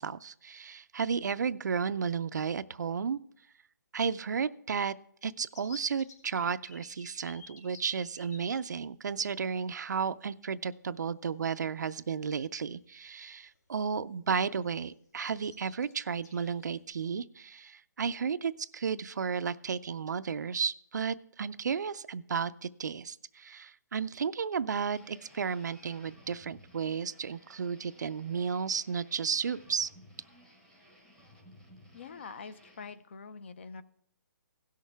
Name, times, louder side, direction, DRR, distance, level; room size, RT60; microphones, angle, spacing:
voice 1, 0.0-3.2 3.9-4.9 5.2-29.9, right 6 dB, 60° right, 15 dB, 0.4 m, -33 dB
sound 1, 5.5-8.5 9.5-9.6 9.9-10.1 11.7-11.8 12.3-12.6 13.0-13.7 14.0-14.2 14.4-14.9 15.3-16.9, left 3 dB, 55° left, 2.9 m, -53 dB
sound 2, 24.9-32.9, equal, 5° left, 0.9 m, -58 dB
voice 2, 31.9-33.8, left 5 dB, 35° left, 14 dB, 0.5 m, -45 dB
17.0 x 6.5 x 3.4 m, 0.67 s
hypercardioid pair, 170°, 11 cm